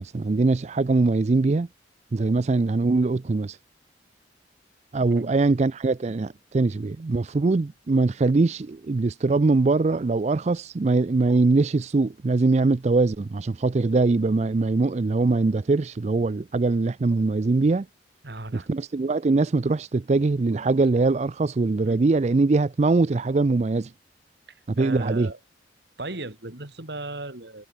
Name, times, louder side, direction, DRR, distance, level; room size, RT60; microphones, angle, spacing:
voice 1, 0.0-1.7 2.1-3.6 4.9-17.9 18.5-23.9 24.7-25.3, right 3 dB, 35° right, 0.4 m, -22 dB
voice 2, 5.0-5.3 18.2-18.7 21.9-22.0 24.5-25.4 26.0-27.7, right 2 dB, 60° right, 2.4 m, -36 dB
head